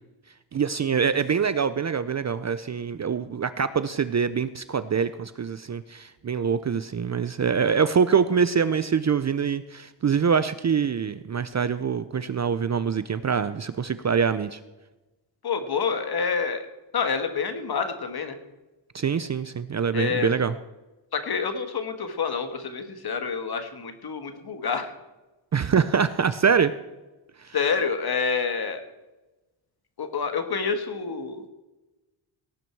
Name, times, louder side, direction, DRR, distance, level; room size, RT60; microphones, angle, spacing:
voice 1, 0.5-14.6 18.9-20.6 25.5-26.7 27.4-27.6, right 6 dB, 35° right, 13 dB, 0.5 m, -24 dB
voice 2, 15.4-16.6 16.9-18.4 19.9-20.3 21.1-24.9 27.5-28.8 30.0-31.5, left 5 dB, 50° left, 7 dB, 1.6 m, -28 dB
18.0 x 9.1 x 4.6 m, 1.1 s
wide cardioid pair, 140°, 49 cm